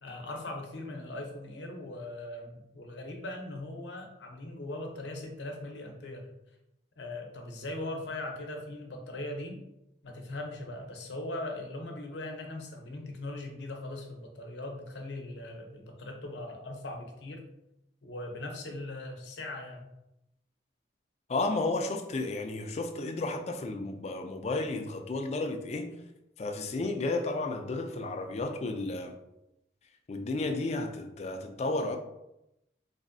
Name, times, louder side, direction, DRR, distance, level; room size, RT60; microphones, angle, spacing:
voice 1, 0.0-6.3 7.0-9.6 10.0-17.4 18.0-19.9, left 2 dB, 80° left, 0.7 m, -40 dB
voice 2, 21.3-25.9 26.4-29.1 30.1-32.0, left 2 dB, 40° left, 0.3 m, -32 dB
4.0 x 2.6 x 2.6 m
head